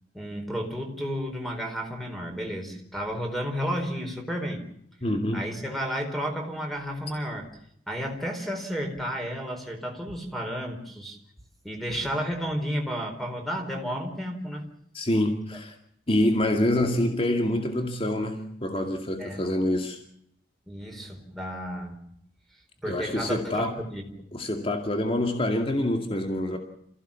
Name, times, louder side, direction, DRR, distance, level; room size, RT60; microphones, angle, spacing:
voice 1, 0.1-4.6 5.3-7.5 7.9-11.2 11.6-14.7 19.2-19.4 20.7-21.9 22.8-24.0, equal, ahead, 3 dB, 4.4 m, -32 dB
voice 2, 5.0-5.5 14.9-15.8 16.1-20.0 22.9-23.7 24.3-26.6, left 1 dB, 30° left, 4 dB, 2.4 m, -26 dB
28.0 x 16.0 x 7.3 m, 0.70 s
head